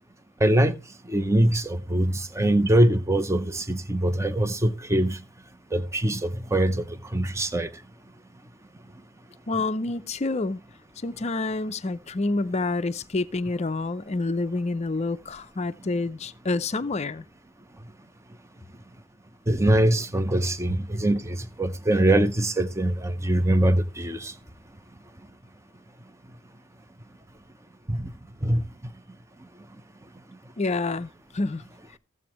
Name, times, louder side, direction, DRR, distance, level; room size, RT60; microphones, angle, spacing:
voice 1, 0.4-0.7 1.1-5.2 5.7-6.9 7.1-7.7 19.5-24.3 27.9-28.1 28.4-28.6, right 1 dB, 15° right, 0.6 m, -23 dB
voice 2, 9.5-10.6 11.0-17.3 30.6-31.6, left 3 dB, 30° left, 0.5 m, -28 dB
15.0 x 7.7 x 3.0 m
head